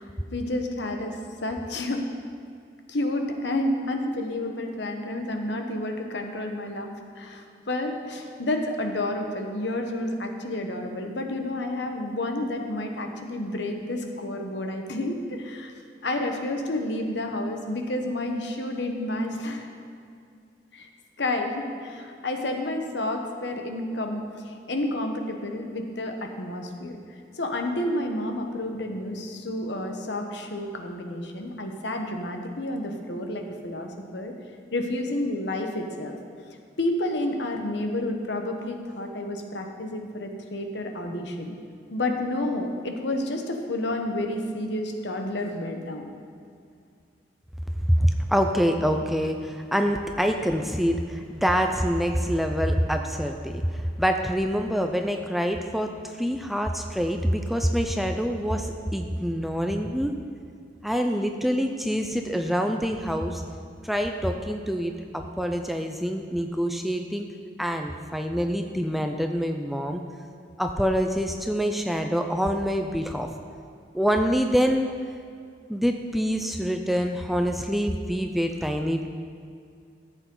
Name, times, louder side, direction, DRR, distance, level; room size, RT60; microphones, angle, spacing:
voice 1, 0.0-2.0 2.9-15.7 16.0-19.7 20.7-20.9 21.2-27.0 27.4-34.3 34.7-36.1 36.8-41.5 41.9-46.1, left 1 dB, 70° left, 4 dB, 1.0 m, -30 dB
voice 2, 47.9-60.1 60.8-63.4 63.8-67.3 67.6-70.0 70.6-73.4 73.9-74.9 75.7-79.1, equal, ahead, 4 dB, 0.4 m, -26 dB
13.5 x 8.1 x 3.8 m, 2.3 s
head